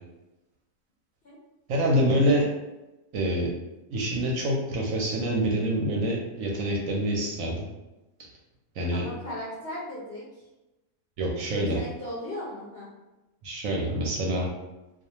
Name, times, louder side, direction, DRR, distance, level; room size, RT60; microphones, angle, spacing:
voice 1, 1.7-2.5 3.1-3.5 3.9-7.6 8.8-9.0 11.2-11.8 13.4-14.5, equal, 70° right, -1 dB, 0.8 m, -26 dB
voice 2, 8.9-10.4 11.5-12.9, left 1 dB, 60° left, -7 dB, 0.6 m, -37 dB
2.4 x 2.3 x 2.8 m, 1.0 s
omnidirectional pair, 1.6 m